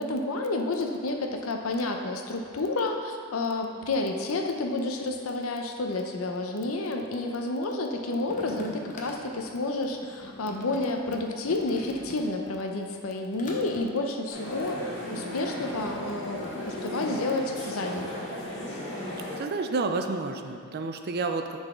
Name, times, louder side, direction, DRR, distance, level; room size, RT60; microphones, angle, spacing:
voice 1, 0.0-18.1, left 2 dB, 85° left, 3 dB, 0.7 m, -30 dB
sound 1, 8.2-12.6 12.9-13.8, left 2 dB, 40° left, 0.8 m, -43 dB
sound 2, 14.3-19.4, left 1 dB, 60° left, 1.8 m, -36 dB
voice 2, 19.4-21.6, right 3 dB, 50° right, 6 dB, 0.5 m, -30 dB
9.8 x 4.0 x 3.6 m, 2.2 s
head